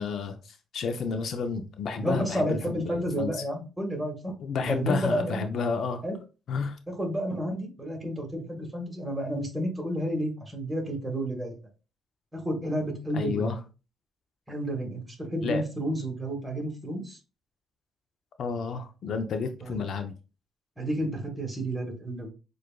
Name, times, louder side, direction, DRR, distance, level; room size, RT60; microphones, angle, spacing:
voice 1, 0.0-3.3 4.4-6.0 6.5-6.8 13.1-13.6 15.4-15.6 18.4-20.1, left 5 dB, 65° left, 0.5 m, -31 dB
voice 2, 2.0-4.3 4.7-5.4 6.0-6.2 6.9-11.5 12.3-13.6 14.5-17.2 19.6-19.8 20.8-22.3, right 1 dB, 10° right, 1.6 m, -31 dB
6.4 x 2.5 x 2.2 m
cardioid pair, 90°, 0 cm